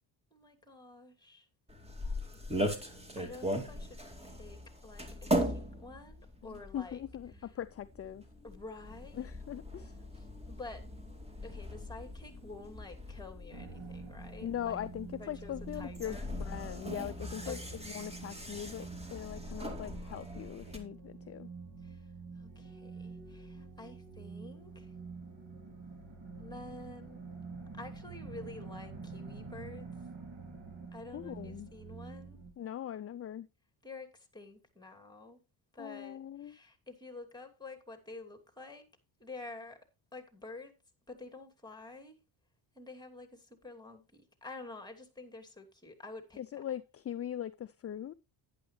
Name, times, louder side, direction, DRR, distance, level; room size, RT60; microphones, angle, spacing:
voice 1, 0.3-1.5 3.2-4.0 4.2-7.0 7.3-7.5 8.4-9.3 9.8-9.9 10.1-10.9 11.4-14.8 15.2-16.3 17.4-17.7 21.8-24.9 26.4-27.2 27.7-29.9 30.9-32.4 33.8-35.4 35.7-38.9 39.2-39.8 40.1-40.7 41.1-42.2 42.7-46.4, left 2 dB, 10° left, 2.8 m, -49 dB
sound 1, 1.7-20.8, equal, 10° right, 2.6 m, -40 dB
voice 2, 6.5-8.2 9.2-10.0 14.4-17.6 17.8-21.5 31.1-31.7 32.6-33.5 35.8-36.6 46.4-48.1, left 10 dB, 30° left, 0.5 m, -41 dB
sound 2, 13.5-32.5, right 4 dB, 55° right, 4.3 m, -47 dB
11.0 x 11.0 x 3.2 m
cardioid pair, 90°, 48 cm